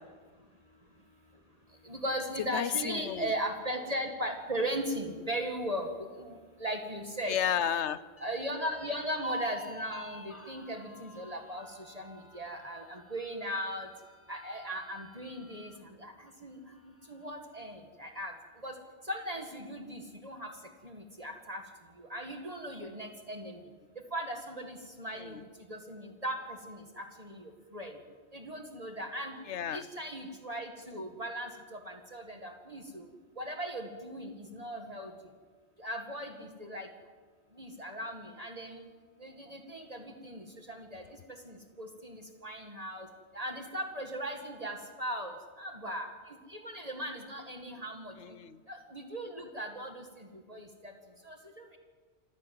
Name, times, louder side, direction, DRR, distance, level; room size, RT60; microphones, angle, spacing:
voice 1, 1.8-5.9 6.2-7.4 8.2-11.7 11.9-13.9 14.3-15.7 16.0-16.6 17.1-18.3 18.6-18.7 19.1-20.5 20.8-21.6 22.0-23.6 24.1-25.4 25.7-28.0 28.3-29.4 29.7-33.0 33.4-35.1 35.8-36.9 37.6-38.8 39.2-41.0 41.5-43.1 43.3-46.1 46.5-48.1 48.7-50.9 51.3-51.8, equal, 35° right, 4 dB, 2.1 m, -38 dB
voice 2, 2.5-3.3 7.3-8.0 25.2-25.4 29.5-29.8 48.2-48.6, left 9 dB, 80° left, 15 dB, 1.1 m, -32 dB
sound 1, 8.2-15.8 16.3-16.4 16.8-17.4, right 1 dB, 10° left, 1.2 m, -47 dB
27.0 x 15.5 x 7.7 m, 1.5 s
omnidirectional pair, 1.2 m